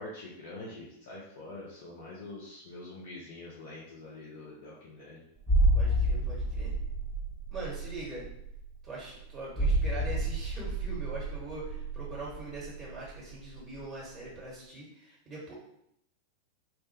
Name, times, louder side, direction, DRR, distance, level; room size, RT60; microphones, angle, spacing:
voice 1, 0.0-5.2, left 2 dB, 55° left, -5 dB, 0.6 m, -45 dB
sound 1, 5.4-13.9 14.1-14.3, right 1 dB, ahead, 0.4 m, -30 dB
voice 2, 5.7-6.8 7.5-8.3 8.8-15.5, right 2 dB, 15° right, -7 dB, 1.0 m, -42 dB
2.8 x 2.1 x 3.3 m, 0.77 s
figure-of-eight pair, 90°, 0 cm